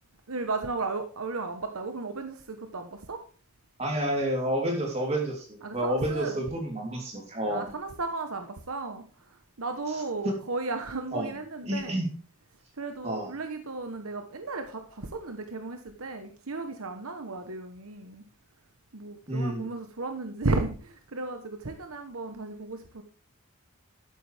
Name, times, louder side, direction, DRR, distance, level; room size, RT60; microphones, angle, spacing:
voice 1, 0.3-3.2 5.6-6.4 7.5-12.0 12.8-18.2 18.9-23.0, right 3 dB, 75° right, 6 dB, 1.1 m, -34 dB
voice 2, 3.8-7.7 10.2-10.4 11.1-11.3 11.6-12.1 13.0-13.3 19.3-19.7, right 1 dB, 30° right, 0 dB, 3.3 m, -29 dB
12.5 x 9.0 x 3.5 m, 0.38 s
head